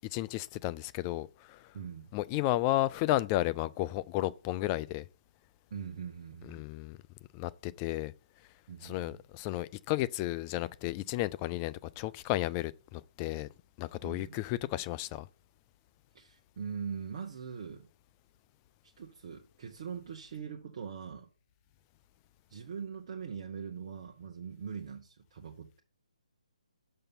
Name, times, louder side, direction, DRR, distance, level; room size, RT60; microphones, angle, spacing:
voice 1, 0.1-1.7 2.1-5.1 6.5-7.0 7.3-8.1 8.8-13.5 13.8-15.3, left 16 dB, 20° left, 0.3 m, -33 dB
voice 2, 1.7-2.1 5.7-6.7 8.7-9.2 14.0-14.4 16.1-17.9 18.8-21.3 22.5-25.7, right 6 dB, 40° right, 1.0 m, -42 dB
6.8 x 5.5 x 5.7 m
figure-of-eight pair, 140°, 4 cm